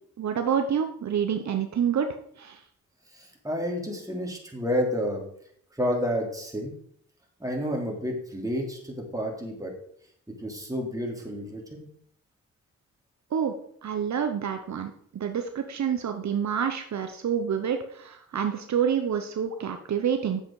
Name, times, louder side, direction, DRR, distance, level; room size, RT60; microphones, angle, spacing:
voice 1, 0.2-2.1 2.4-2.6 13.3-13.5 13.8-20.4, right 8 dB, 65° right, 6 dB, 0.9 m, -28 dB
voice 2, 3.1-5.2 5.8-6.7 7.4-9.7 10.4-11.9, equal, 10° right, -1 dB, 3.1 m, -30 dB
8.9 x 7.4 x 4.8 m, 0.65 s
cardioid pair, 80°, 30 cm